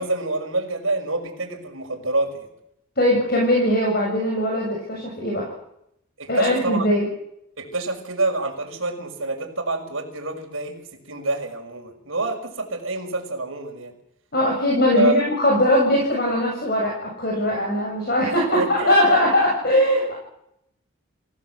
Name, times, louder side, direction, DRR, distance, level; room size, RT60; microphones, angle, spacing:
voice 1, 0.0-2.5 6.2-6.9 7.6-13.9 15.0-15.2 18.5-19.3, right 2 dB, 70° right, 2 dB, 6.2 m, -27 dB
voice 2, 3.0-5.5 6.3-7.1 14.3-20.1, left 1 dB, 45° left, -1 dB, 7.6 m, -20 dB
28.5 x 17.0 x 8.1 m, 0.78 s
head